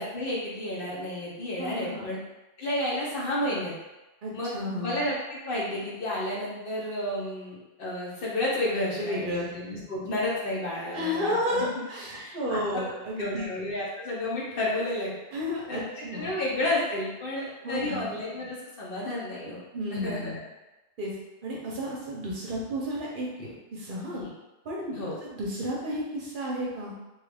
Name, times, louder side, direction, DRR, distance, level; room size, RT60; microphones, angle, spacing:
voice 1, 0.0-2.2 2.6-3.7 4.3-11.7 12.2-12.8 13.2-15.1 15.7-15.8 16.1-19.6 19.9-20.4 24.1-24.3 24.9-25.1, left 1 dB, 55° left, -5 dB, 0.9 m, -31 dB
voice 2, 1.6-2.1 4.2-5.0 8.7-9.5 10.9-13.5 15.3-16.3 17.6-18.1 19.7-20.4 21.0-21.1 21.4-24.2 24.6-26.9, equal, 55° right, -4 dB, 0.7 m, -32 dB
3.0 x 2.3 x 3.3 m, 1.0 s
omnidirectional pair, 1.2 m